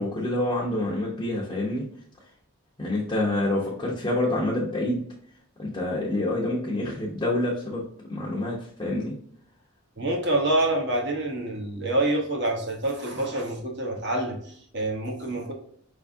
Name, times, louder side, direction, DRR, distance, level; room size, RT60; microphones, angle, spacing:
voice 1, 0.0-1.9 2.8-5.0 5.6-7.8 8.1-9.1, left 1 dB, 20° left, -5 dB, 0.8 m, -27 dB
voice 2, 10.0-15.5, right 1 dB, 50° right, 0 dB, 1.1 m, -27 dB
5.2 x 3.5 x 2.6 m, 0.63 s
head